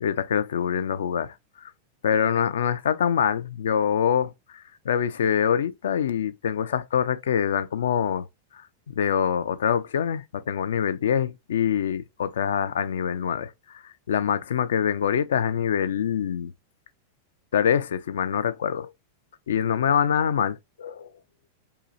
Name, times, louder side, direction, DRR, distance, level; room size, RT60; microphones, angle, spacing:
voice 1, 0.0-1.3 1.6-1.7 2.0-8.2 9.0-13.8 14.1-16.5 17.5-18.9 19.5-21.1, left 8 dB, 70° left, 0.3 m, -25 dB
2.7 x 2.0 x 2.5 m
hypercardioid pair, 95°, 0 cm